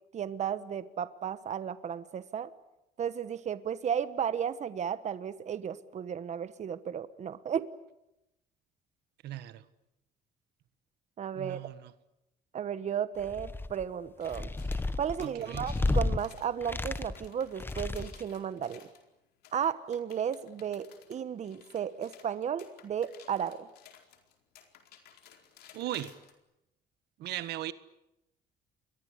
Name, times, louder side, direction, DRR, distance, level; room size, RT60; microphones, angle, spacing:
voice 1, 0.1-2.5 3.0-7.7 11.2-11.6 12.5-14.5 15.0-18.8 19.5-23.7, right 8 dB, 45° right, 14 dB, 1.2 m, -34 dB
voice 2, 9.2-9.6 11.3-11.7 15.2-15.7 25.7-26.1 27.2-27.7, right 14 dB, 75° right, 14 dB, 1.5 m, -37 dB
sound 1, 13.2-13.8 14.3-16.2 16.6-17.3 17.6-18.3, left 2 dB, 10° left, 1.4 m, -32 dB
sound 2, 14.2-19.0 19.4-26.3, left 9 dB, 70° left, 4.4 m, -56 dB
29.0 x 22.5 x 8.2 m, 0.88 s
cardioid pair, 110°, 17 cm